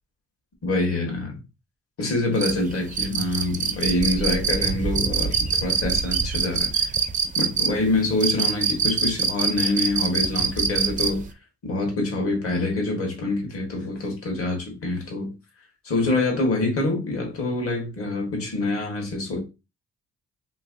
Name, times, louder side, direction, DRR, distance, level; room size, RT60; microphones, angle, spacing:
voice 1, 0.6-1.4 2.0-6.9 7.4-11.2 11.6-15.3 15.8-19.4, left 2 dB, 50° left, 1.4 m, -26 dB
sound 1, 2.4-11.3, right 5 dB, 25° right, 0.4 m, -24 dB
3.1 x 3.0 x 2.5 m
cardioid pair, 90°, 30 cm